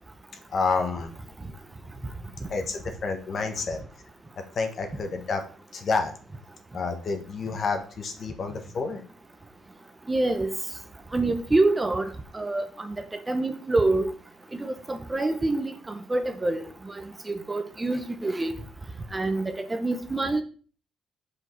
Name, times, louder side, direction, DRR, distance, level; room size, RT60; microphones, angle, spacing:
voice 1, 0.5-1.1 2.5-3.8 4.5-5.4 5.7-6.1 6.7-9.0, left 4 dB, 50° left, 6 dB, 1.3 m, -29 dB
voice 2, 10.1-10.5 11.1-12.1 12.3-12.9 13.3-14.1 14.6-18.5 19.1-20.4, right 2 dB, 20° right, 8 dB, 0.9 m, -26 dB
6.2 x 5.0 x 4.5 m, 0.40 s
cardioid pair, 90°, 0 cm